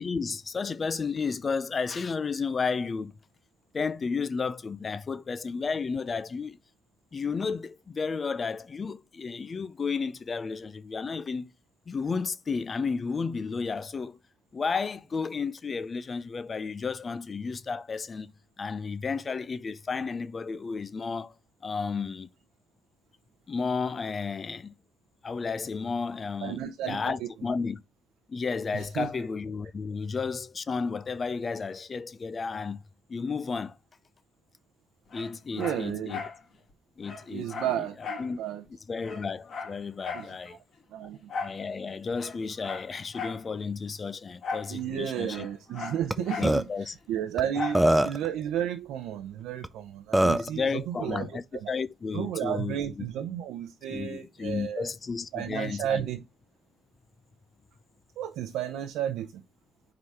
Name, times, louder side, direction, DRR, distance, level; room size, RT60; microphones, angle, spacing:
voice 1, 0.0-3.1 3.7-6.6 7.1-11.5 11.9-14.2 14.5-18.3 18.6-21.3 21.6-22.3 23.5-24.7 25.2-27.8 28.3-32.8 33.1-33.8 35.1-36.2 37.0-37.8 38.2-38.4 38.9-40.6 41.3-45.5 46.4-46.9 48.0-48.1 50.3-52.8 53.9-56.1, left 5 dB, 35° left, 0.6 m, -32 dB
voice 2, 26.4-27.3 28.7-29.1 35.6-36.2 37.3-38.6 40.1-40.6 40.9-41.3 44.7-51.7 52.1-54.9 55.3-56.2 58.2-59.4, right 10 dB, 90° right, 0.7 m, -33 dB
Dog, 35.1-36.4 36.7-36.8 37.0-38.3 38.7-38.8 39.0-40.3 41.3-41.6 42.1-43.4 44.4-44.7 45.0-46.6 47.5-47.9 48.3-48.4, left 5 dB, 55° left, 2.3 m, -37 dB
Burping eructation, 46.1-46.2 46.4-46.6 47.4-47.5 47.7-48.3 49.6-49.7 50.1-50.5, right 1 dB, 10° right, 0.5 m, -22 dB
4.8 x 3.9 x 5.6 m
cardioid pair, 90°, 0 cm